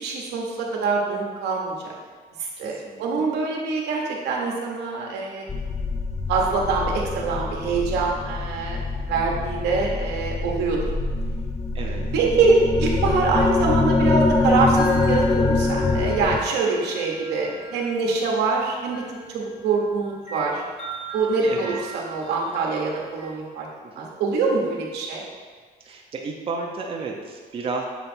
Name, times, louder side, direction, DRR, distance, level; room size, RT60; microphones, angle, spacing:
voice 1, 0.0-1.9 2.4-5.4 6.3-10.8 12.1-19.0 19.3-20.6 21.1-23.7 24.0-25.3, right 4 dB, 80° right, -1 dB, 1.1 m, -24 dB
voice 2, 2.6-3.3 11.7-12.1 21.4-21.8 23.8-24.1 25.8-27.9, right 4 dB, 35° right, 0 dB, 0.7 m, -33 dB
sound 1, 5.5-16.4, left 3 dB, 15° left, 0.4 m, -24 dB
sound 2, 14.4-23.3, equal, 30° left, 1.2 m, -40 dB
6.8 x 3.1 x 4.4 m, 1.5 s
cardioid pair, 110°, 17 cm